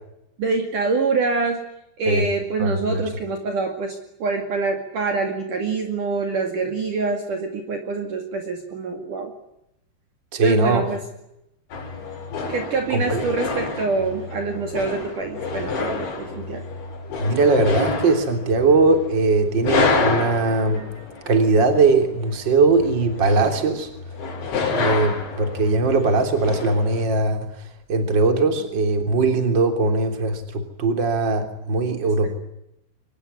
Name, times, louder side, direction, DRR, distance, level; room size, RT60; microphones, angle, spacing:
voice 1, 0.4-1.6 2.0-9.3 10.4-11.0 12.5-16.6, right 4 dB, 50° right, 4 dB, 3.4 m, -25 dB
voice 2, 2.6-3.0 10.3-10.8 12.9-13.2 17.2-20.8 21.2-23.9 24.7-27.4 27.9-32.3, right 3 dB, 25° right, 6 dB, 3.4 m, -20 dB
sound 1, 11.7-27.1, left 4 dB, 85° left, 8.2 m, -28 dB
25.0 x 20.5 x 9.9 m, 0.83 s
omnidirectional pair, 5.2 m